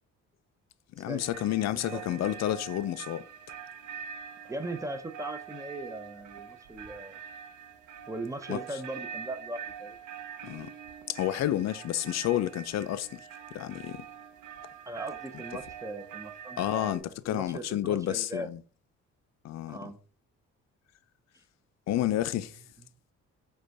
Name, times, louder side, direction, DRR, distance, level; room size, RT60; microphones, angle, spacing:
voice 1, 1.0-3.3 8.5-8.6 10.4-10.7 11.1-13.2 13.5-14.1 16.6-18.6 19.4-19.9 21.9-22.6, left 12 dB, 60° left, 0.5 m, -30 dB
sound 1, 1.2-17.0, right 8 dB, 75° right, 0.7 m, -44 dB
voice 2, 1.9-2.2 4.5-7.2 8.1-10.0 12.2-12.4 14.9-18.5 19.7-20.0 21.3-21.4, right 1 dB, 10° right, 0.6 m, -39 dB
4.9 x 2.3 x 4.6 m
cardioid pair, 90°, 30 cm